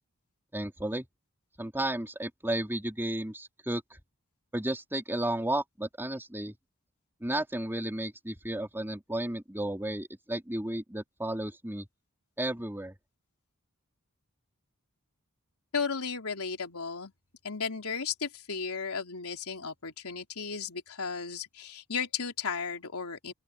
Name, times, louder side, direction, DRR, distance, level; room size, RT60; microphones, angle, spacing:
voice 1, 0.5-1.1 1.6-4.0 4.5-6.5 7.2-11.9 12.4-12.9, right 1 dB, 10° right, 3.6 m, -33 dB
voice 2, 15.7-17.1 17.4-23.3, left 5 dB, 85° left, 3.5 m, -34 dB
open air
head